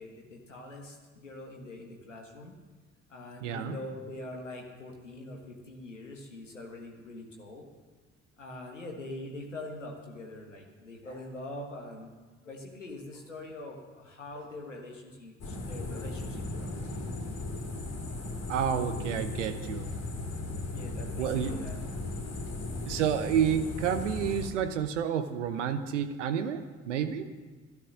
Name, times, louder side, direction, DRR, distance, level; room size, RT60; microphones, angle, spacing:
voice 1, 0.0-2.5 3.1-7.6 8.4-12.1 12.4-16.8 20.7-21.8, left 2 dB, 90° left, 1 dB, 1.5 m, -43 dB
voice 2, 3.4-3.8 18.5-19.9 21.2-21.5 22.9-27.3, right 8 dB, 80° right, 10 dB, 0.9 m, -30 dB
sound 1, 15.4-24.5, left 2 dB, 45° left, 2.8 m, -37 dB
12.5 x 12.0 x 6.2 m, 1.3 s
figure-of-eight pair, 45°, 36 cm